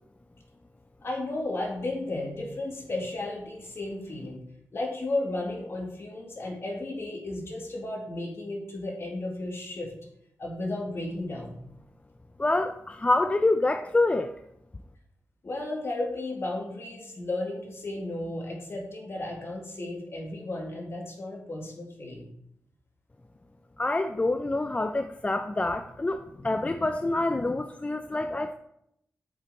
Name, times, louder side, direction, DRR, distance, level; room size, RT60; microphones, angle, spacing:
voice 1, 1.0-4.4 4.7-9.9 10.4-11.6 15.4-22.3, left 2 dB, 50° left, 0 dB, 2.0 m, -34 dB
voice 2, 12.4-14.4 23.8-28.5, left 2 dB, 25° left, 8 dB, 0.4 m, -26 dB
7.4 x 5.4 x 4.2 m, 0.76 s
cardioid pair, 60°, 5 cm